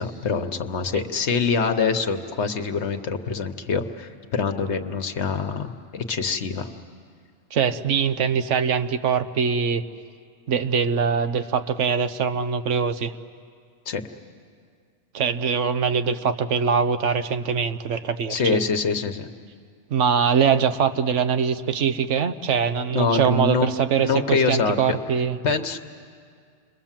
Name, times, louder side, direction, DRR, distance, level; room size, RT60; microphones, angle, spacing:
voice 1, 0.0-6.7 13.9-14.0 18.3-19.3 22.9-23.7 24.0-24.8 25.4-25.8, left 5 dB, 65° left, 7 dB, 1.3 m, -25 dB
voice 2, 7.5-9.8 10.5-13.1 15.1-18.6 19.9-25.4, right 6 dB, 80° right, 10 dB, 1.2 m, -23 dB
29.5 x 22.0 x 7.4 m, 2.2 s
omnidirectional pair, 1.2 m